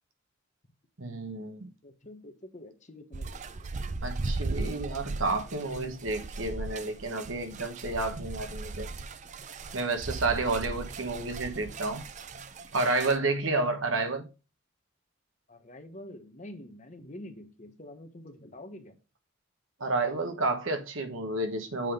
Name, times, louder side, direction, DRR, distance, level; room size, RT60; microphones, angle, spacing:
voice 1, 1.0-1.7 4.0-8.9 9.7-12.0 12.7-14.3 19.8-21.9, right 3 dB, 75° right, 1.2 m, -30 dB
voice 2, 1.8-3.7 15.5-19.0, left 1 dB, 35° left, 1.1 m, -47 dB
sound 1, 3.1-13.2, right 3 dB, 35° right, 0.5 m, -37 dB
7.5 x 3.8 x 5.0 m
head